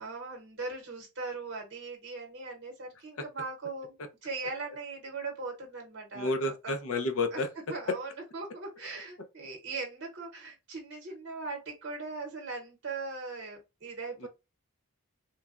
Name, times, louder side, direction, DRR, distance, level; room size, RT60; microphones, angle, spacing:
voice 1, 0.0-4.0 4.2-6.7 7.3-7.4 7.7-14.3, right 3 dB, 55° right, 0.8 m, -39 dB
voice 2, 6.1-7.5 7.9-8.0 14.2-14.3, left 2 dB, 70° left, 0.5 m, -30 dB
3.1 x 2.1 x 2.4 m
head